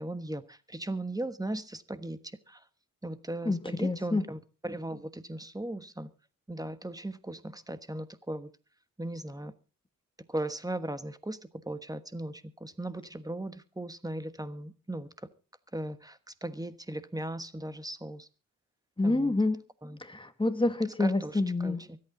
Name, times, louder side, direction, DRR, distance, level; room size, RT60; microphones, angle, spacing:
voice 1, 0.0-2.2 2.5-2.6 3.0-6.1 6.5-8.5 9.0-9.5 10.3-11.4 11.7-15.1 15.7-18.3 19.0-19.3 19.8-20.0 21.0-22.0, right 1 dB, 10° right, 1.2 m, -37 dB
voice 2, 3.5-4.2 19.0-19.6 20.0-21.8, left 2 dB, 15° left, 2.0 m, -28 dB
24.0 x 8.8 x 3.9 m
cardioid pair, 70°, 33 cm